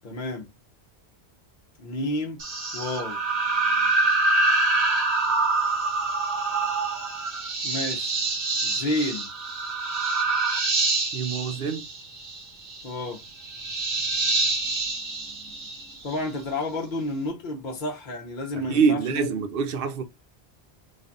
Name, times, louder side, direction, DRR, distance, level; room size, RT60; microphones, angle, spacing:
voice 1, 0.0-0.5 1.8-2.4 2.7-3.2 7.6-8.2 8.6-9.3 12.8-13.2 16.0-19.3, left 2 dB, 50° left, 0.9 m, -30 dB
sound 1, 2.4-16.3, right 3 dB, 80° right, 1.4 m, -26 dB
voice 2, 11.1-11.9 18.6-20.0, right 6 dB, 65° right, 0.7 m, -25 dB
3.3 x 2.3 x 3.8 m
omnidirectional pair, 1.1 m